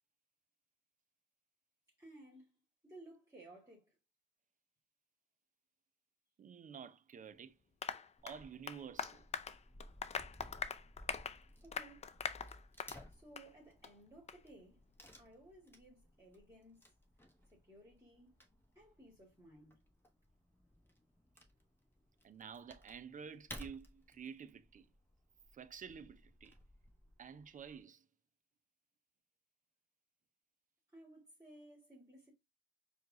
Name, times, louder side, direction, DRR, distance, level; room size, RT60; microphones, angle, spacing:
voice 1, 2.0-2.5 2.8-3.9 11.6-12.1 13.1-14.8 15.2-16.8 17.5-18.4 18.8-19.7 30.9-32.3, right 1 dB, 15° right, 2.0 m, -58 dB
voice 2, 6.4-7.5 8.2-9.2 22.2-24.9 25.5-26.6 27.2-28.0, right 7 dB, 40° right, 0.6 m, -50 dB
Applause, 7.8-13.0 13.4-13.5 13.8-13.9 14.3-14.4, left 6 dB, 35° left, 0.5 m, -43 dB
Wood / Tearing, 8.2-27.8, equal, 10° left, 1.2 m, -59 dB
4.5 x 2.5 x 3.7 m
cardioid pair, 90°, 20 cm